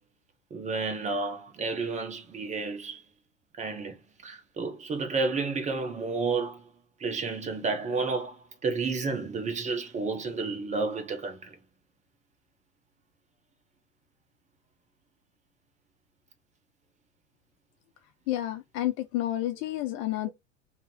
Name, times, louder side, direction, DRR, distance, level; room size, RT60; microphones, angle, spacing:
voice 1, 0.5-3.0 3.6-6.7 7.0-11.5, right 4 dB, 20° right, 0.8 m, -31 dB
voice 2, 18.3-20.3, left 14 dB, 35° left, 0.4 m, -30 dB
2.8 x 2.6 x 4.1 m
figure-of-eight pair, 85°, 38 cm